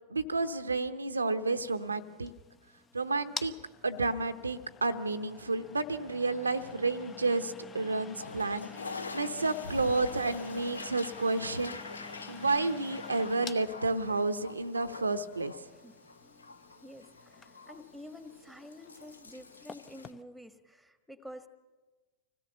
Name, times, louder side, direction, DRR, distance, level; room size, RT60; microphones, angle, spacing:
voice 1, 0.1-2.3 2.9-3.5 3.8-11.8 12.3-15.5, right 3 dB, 80° right, 8 dB, 0.9 m, -31 dB
sound 1, 1.5-20.2, left 6 dB, 20° left, 0.9 m, -49 dB
Toilet flush, 8.1-20.1, left 3 dB, 75° left, 0.7 m, -45 dB
voice 2, 15.7-16.0 16.8-21.5, left 1 dB, ahead, 12 dB, 1.4 m, -49 dB
25.5 x 17.0 x 6.9 m, 1.3 s
figure-of-eight pair, 90°, 0 cm